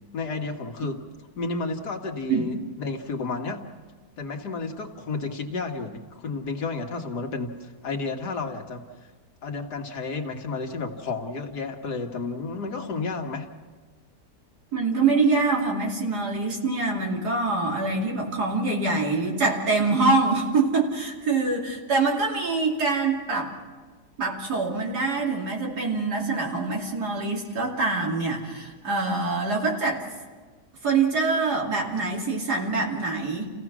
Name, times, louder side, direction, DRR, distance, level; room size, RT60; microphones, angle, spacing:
voice 1, 0.1-1.0 1.4-3.7 4.2-8.9 9.4-13.5, left 3 dB, 75° left, 2 dB, 2.2 m, -31 dB
voice 2, 14.7-23.5 24.2-30.0 30.8-33.5, right 3 dB, 70° right, -1 dB, 3.2 m, -25 dB
29.0 x 16.5 x 6.1 m, 1.4 s
omnidirectional pair, 1.8 m